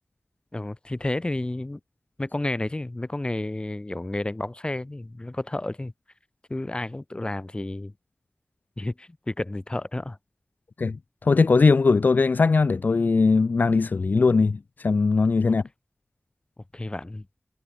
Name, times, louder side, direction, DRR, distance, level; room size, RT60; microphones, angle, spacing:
voice 1, 0.5-1.8 2.2-5.9 6.5-7.9 8.8-10.2 15.5-15.6 16.7-17.3, left 2 dB, 30° left, 3.7 m, -31 dB
voice 2, 10.8-15.6, left 4 dB, 85° left, 1.1 m, -20 dB
wide cardioid pair, 65°, 3 cm